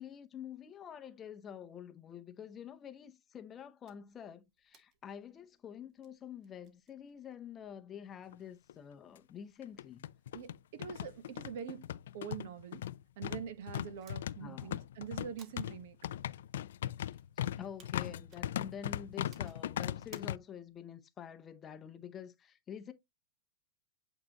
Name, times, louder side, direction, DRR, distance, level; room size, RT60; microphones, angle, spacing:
voice 1, 0.0-10.0 14.4-14.7 17.4-22.9, left 8 dB, 20° left, 0.7 m, -48 dB
sound 1, 3.8-20.8, right 6 dB, 30° right, 1.3 m, -68 dB
sound 2, 8.3-8.4 8.7-8.8 9.6-20.4, left 11 dB, 80° left, 0.4 m, -39 dB
voice 2, 10.3-11.9 12.1-12.9 13.2-16.0, right 8 dB, 60° right, 1.1 m, -44 dB
8.6 x 3.8 x 2.9 m
supercardioid pair, 160°, 0 cm